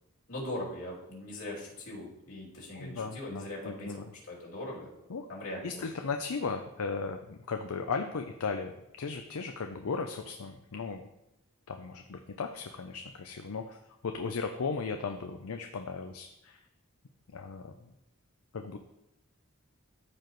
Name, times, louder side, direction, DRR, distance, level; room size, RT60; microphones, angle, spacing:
voice 1, 0.3-4.9 5.3-5.8, left 1 dB, 70° left, -5 dB, 2.8 m, -40 dB
voice 2, 2.7-4.0 5.1-5.3 5.6-8.7 9.0-11.1 11.7-13.8 14.0-16.6 17.3-17.9 18.5-18.8, left 4 dB, 90° left, 5 dB, 0.6 m, -36 dB
14.0 x 4.9 x 3.1 m, 0.88 s
head